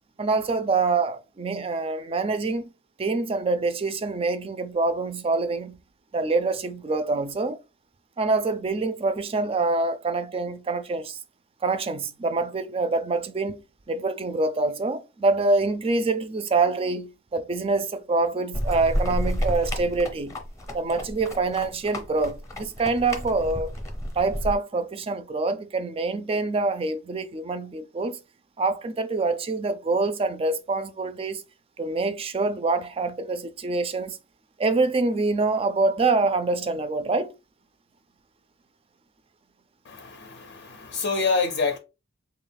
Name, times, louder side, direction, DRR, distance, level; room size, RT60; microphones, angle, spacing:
voice 1, 0.2-2.7 3.0-5.8 6.1-7.6 8.2-11.2 11.6-13.6 13.9-20.4 20.7-23.7 24.1-28.2 28.6-31.4 31.8-34.2 34.6-37.3, right 3 dB, 30° right, 0.4 m, -25 dB
sound 1, 18.5-24.5, equal, 15° left, 0.7 m, -30 dB
voice 2, 39.9-41.8, left 4 dB, 60° left, 0.5 m, -27 dB
3.7 x 2.3 x 3.3 m
head